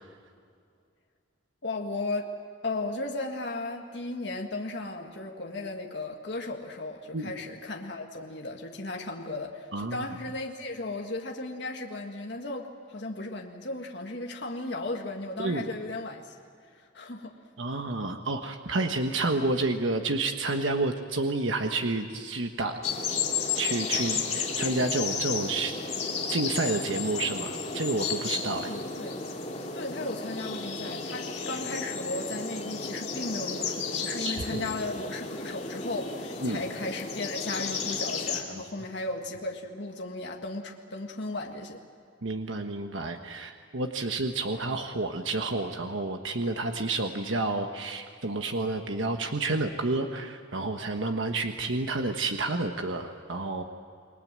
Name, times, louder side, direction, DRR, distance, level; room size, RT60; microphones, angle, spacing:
voice 1, 1.6-2.3 2.6-16.2 16.8-17.3 28.6-29.2 29.7-41.8, left 2 dB, 60° left, 1 dB, 1.9 m, -35 dB
voice 2, 9.7-10.0 15.4-15.7 17.6-22.8 23.5-25.7 26.3-28.7 34.2-34.6 36.4-36.6 42.2-53.6, right 2 dB, 85° right, 5 dB, 1.4 m, -30 dB
sound 1, 22.8-38.4, left 5 dB, 35° left, 2.7 m, -33 dB
29.0 x 21.0 x 7.6 m, 2.3 s
head